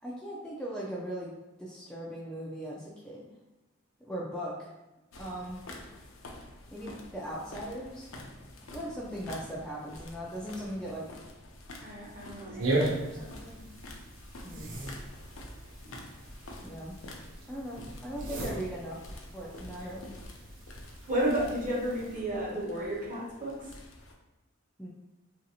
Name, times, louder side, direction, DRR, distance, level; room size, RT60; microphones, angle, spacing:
voice 1, 0.0-3.3 4.0-4.7 5.2-5.6 6.7-8.1 8.6-11.1 12.6-13.7 14.4-14.8 16.6-17.0 17.5-19.0 19.3-20.1 24.8-24.9, equal, 5° left, -5 dB, 0.3 m, -39 dB
sound 1, 5.1-24.1, left 1 dB, 75° left, 0.5 m, -48 dB
voice 2, 11.8-12.7 13.1-13.4 21.1-23.6, right 1 dB, 40° right, -5 dB, 0.9 m, -32 dB
sound 2, 12.6-22.1, right 1 dB, 70° right, 0.6 m, -37 dB
3.1 x 2.6 x 2.8 m, 1.0 s
head